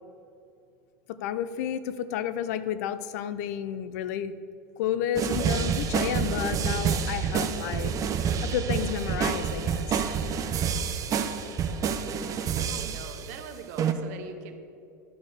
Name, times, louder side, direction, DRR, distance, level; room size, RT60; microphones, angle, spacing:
voice 1, 1.1-4.3 4.8-7.9 8.2-10.1, left 9 dB, 70° left, 13 dB, 0.5 m, -31 dB
sound 1, 5.1-13.4 13.8-13.9, right 7 dB, 35° right, 0.7 m, -28 dB
voice 2, 12.7-14.6, right 6 dB, 70° right, 7 dB, 1.0 m, -42 dB
11.0 x 4.1 x 6.5 m, 2.6 s
hypercardioid pair, 95°, 9 cm